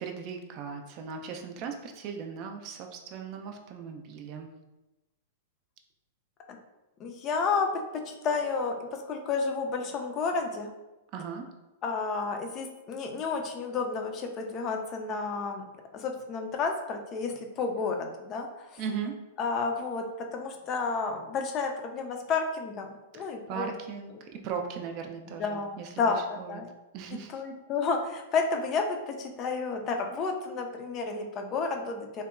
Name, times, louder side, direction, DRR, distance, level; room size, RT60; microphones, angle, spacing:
voice 1, 0.0-4.5 11.1-11.5 18.8-19.2 23.5-25.9 26.4-26.5 26.9-27.3, right 6 dB, 45° right, 4 dB, 0.3 m, -37 dB
voice 2, 7.0-10.7 11.8-15.6 15.9-18.8 19.4-23.7 24.1-24.2 25.3-26.7 27.3-32.2, left 4 dB, 35° left, 4 dB, 0.3 m, -31 dB
2.8 x 2.1 x 2.4 m, 1.0 s
figure-of-eight pair, 105°, 0 cm